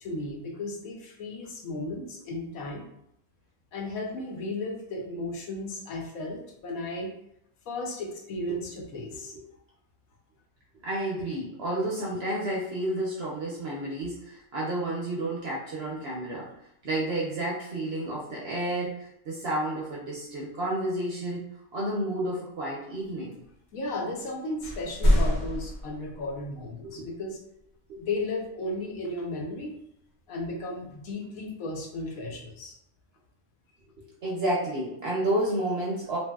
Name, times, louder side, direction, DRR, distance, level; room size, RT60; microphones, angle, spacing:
voice 1, 0.0-2.9 3.7-7.1 7.7-9.3 23.7-27.4 28.0-29.8 30.3-32.7, left 2 dB, 75° left, 1 dB, 1.0 m, -34 dB
voice 2, 9.1-9.4 10.8-16.5 16.8-21.4 21.7-23.4 26.8-27.1 27.9-28.0 34.2-36.2, right 1 dB, 60° right, -5 dB, 0.7 m, -31 dB
sound 1, 24.1-24.3 24.6-26.7, equal, 45° left, 0.6 m, -26 dB
2.9 x 2.6 x 2.2 m, 0.77 s
omnidirectional pair, 1.5 m